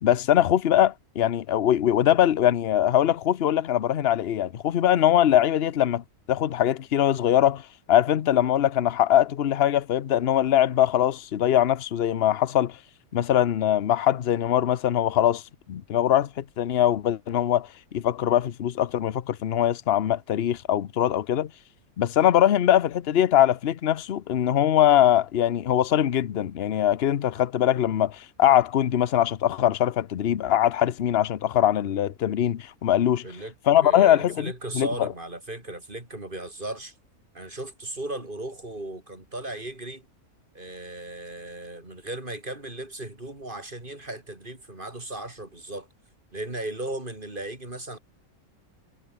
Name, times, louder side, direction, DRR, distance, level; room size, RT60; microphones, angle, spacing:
voice 1, 0.0-7.6 7.9-12.8 13.1-15.4 15.7-21.5 22.0-33.2 33.7-35.1, left 11 dB, 50° left, 0.9 m, -22 dB
voice 2, 33.2-33.5 33.8-36.9 37.3-40.1 40.5-45.9 46.3-48.0, right 2 dB, 35° right, 4.2 m, -36 dB
omnidirectional pair, 1.6 m